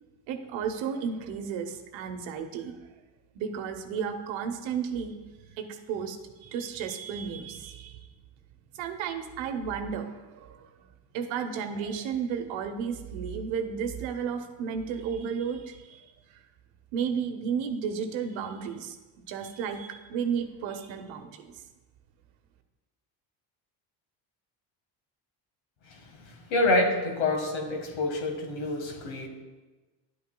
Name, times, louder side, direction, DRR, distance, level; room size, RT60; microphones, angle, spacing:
voice 1, 0.3-2.7 3.3-8.1 8.8-10.7 11.1-16.1 16.9-19.0 19.3-21.5, right 7 dB, 90° right, 7 dB, 0.9 m, -33 dB
voice 2, 26.5-29.3, left 2 dB, 85° left, 3 dB, 1.6 m, -27 dB
10.5 x 8.5 x 2.2 m, 1.2 s
cardioid pair, 105°, 45 cm